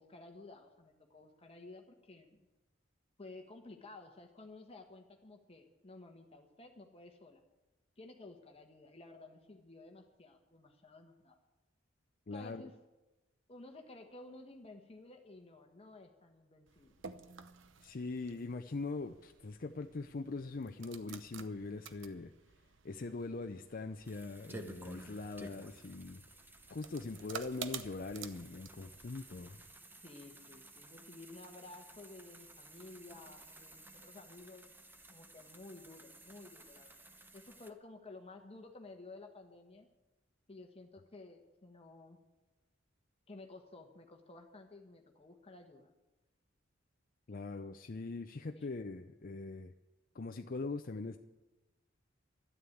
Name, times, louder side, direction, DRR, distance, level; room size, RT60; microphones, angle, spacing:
voice 1, 0.0-2.5 3.2-7.4 8.0-11.4 12.3-12.8 13.5-16.9 30.0-34.7 35.1-37.0 37.3-39.9 40.5-42.2 43.3-45.9 48.6-48.7, left 2 dB, 30° left, 4 dB, 1.2 m, -54 dB
voice 2, 12.3-12.7 17.8-22.3 22.8-26.2 26.7-29.6 47.3-49.7 50.1-51.2, left 3 dB, 45° left, 6 dB, 0.6 m, -42 dB
sound 1, 16.7-29.7, right 6 dB, 70° right, 0.9 m, -52 dB
sound 2, 24.0-37.7, right 2 dB, 10° right, 1.0 m, -55 dB
13.0 x 11.0 x 8.5 m, 1.1 s
head